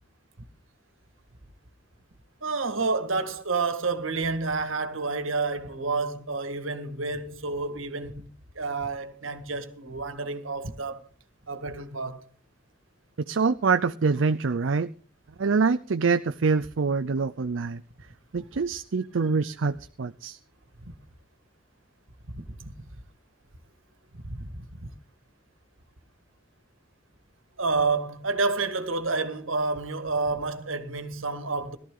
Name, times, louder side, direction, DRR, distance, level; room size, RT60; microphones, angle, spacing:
voice 1, 2.4-8.3 8.6-11.0 11.5-12.3 22.3-22.7 24.2-24.9 27.6-31.8, right 3 dB, 90° right, 1.7 m, -29 dB
voice 2, 13.3-14.9 15.4-17.8 18.3-20.4, right 4 dB, 70° right, 0.5 m, -25 dB
18.0 x 13.0 x 3.8 m
head